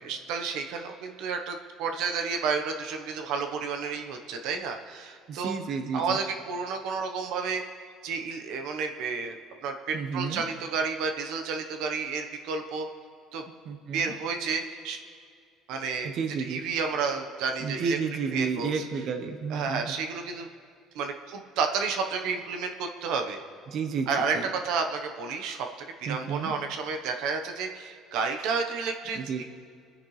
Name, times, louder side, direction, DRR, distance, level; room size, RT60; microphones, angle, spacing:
voice 1, 0.0-5.6 5.9-7.6 8.0-9.4 9.6-12.9 13.3-13.4 13.9-15.0 15.7-16.1 16.4-18.8 19.5-20.5 20.9-23.4 24.1-24.4 24.6-25.7 26.0-29.4, right 5 dB, 75° right, 5 dB, 1.1 m, -31 dB
voice 2, 5.3-6.2 9.9-10.4 13.6-14.1 16.0-16.6 17.6-19.9 23.7-24.1 24.3-24.5 26.1-26.5 29.1-29.4, right 5 dB, 50° right, 6 dB, 1.0 m, -31 dB
24.5 x 10.0 x 3.3 m, 2.3 s
cardioid pair, 130°, 0 cm